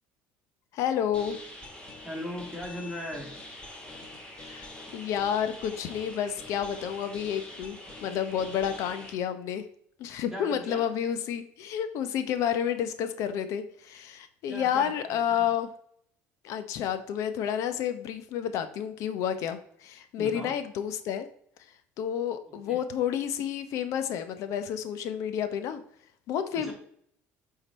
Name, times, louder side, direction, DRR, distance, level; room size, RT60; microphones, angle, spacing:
voice 1, 0.7-1.4 4.4-9.6 10.0-15.7 16.4-21.3 22.0-25.8 26.3-26.7, left 9 dB, 65° left, 10 dB, 0.9 m, -30 dB
sound 1, 1.1-9.1, left 1 dB, 20° left, 2.0 m, -45 dB
voice 2, 2.0-3.3 10.3-10.8 14.5-15.5 20.2-20.5 22.7-22.8 26.5-26.7, equal, 5° right, -2 dB, 2.7 m, -38 dB
8.1 x 4.0 x 4.3 m, 0.66 s
supercardioid pair, 105°, 6 cm